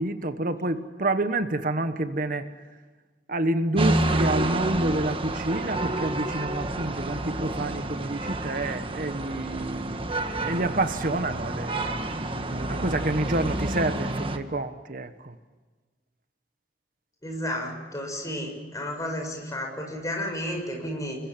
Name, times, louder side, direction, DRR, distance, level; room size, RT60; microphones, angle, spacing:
voice 1, 0.0-2.4 3.3-11.9 12.5-15.3, right 2 dB, 50° right, 10 dB, 1.3 m, -28 dB
sound 1, 3.8-14.4, right 1 dB, 30° right, 1.6 m, -29 dB
voice 2, 17.2-21.2, left 1 dB, 20° left, 2 dB, 6.7 m, -32 dB
29.0 x 21.0 x 7.5 m, 1.3 s
head